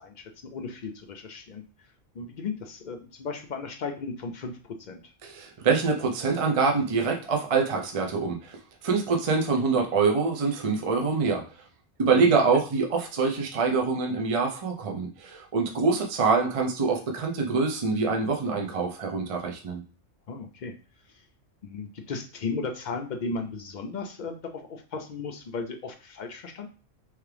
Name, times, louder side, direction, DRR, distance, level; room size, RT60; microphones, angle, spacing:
voice 1, 0.0-1.6 2.1-5.1 12.1-12.6 20.3-20.7 21.1-21.2 21.6-26.7, left 4 dB, 55° left, 5 dB, 0.5 m, -35 dB
voice 2, 5.2-8.6 8.8-11.6 12.0-19.8, right 4 dB, 35° right, 1 dB, 0.6 m, -25 dB
3.5 x 3.2 x 3.3 m, 0.36 s
omnidirectional pair, 1.3 m